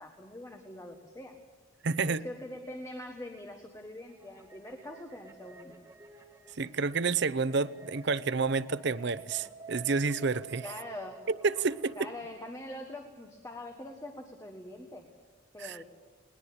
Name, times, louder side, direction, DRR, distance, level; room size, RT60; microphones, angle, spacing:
voice 1, 0.0-1.4 2.1-5.8 10.6-11.2 12.0-15.1 15.5-15.8, left 1 dB, 15° left, 4 dB, 1.5 m, -43 dB
voice 2, 1.8-2.2 6.6-10.7 11.3-12.1 15.6-15.8, right 4 dB, 55° right, 15 dB, 0.7 m, -29 dB
sound 1, 4.1-12.3, right 4 dB, 15° right, 1.9 m, -51 dB
20.5 x 20.0 x 8.6 m, 1.4 s
head